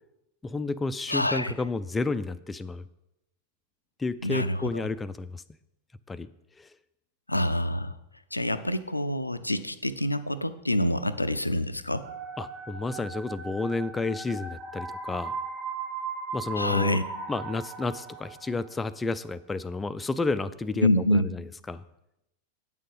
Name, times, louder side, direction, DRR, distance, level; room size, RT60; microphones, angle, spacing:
voice 1, 0.4-2.9 4.0-5.4 6.1-6.3 6.6-6.7 12.4-15.3 16.3-17.0 17.3-21.8, left 3 dB, 10° left, 13 dB, 0.4 m, -31 dB
voice 2, 1.1-1.5 4.2-4.9 7.3-7.9 8.3-12.0 16.6-17.0 20.8-21.3, left 1 dB, 85° left, 11 dB, 0.4 m, -26 dB
sound 1, 11.9-18.7, right 4 dB, 20° right, 2.7 m, -37 dB
8.9 x 6.5 x 5.4 m, 0.87 s
figure-of-eight pair, 90°, 0 cm